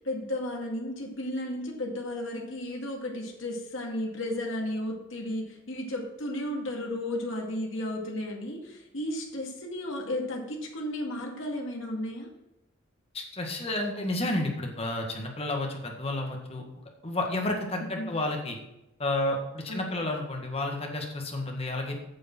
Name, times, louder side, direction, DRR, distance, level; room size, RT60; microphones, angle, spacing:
voice 1, 0.0-12.3 17.8-18.2 19.7-19.9, left 1 dB, 65° left, -1 dB, 2.2 m, -34 dB
voice 2, 13.1-16.6 17.0-18.6 19.0-22.0, left 2 dB, 30° left, 2 dB, 1.8 m, -31 dB
9.2 x 6.8 x 6.1 m, 0.89 s
head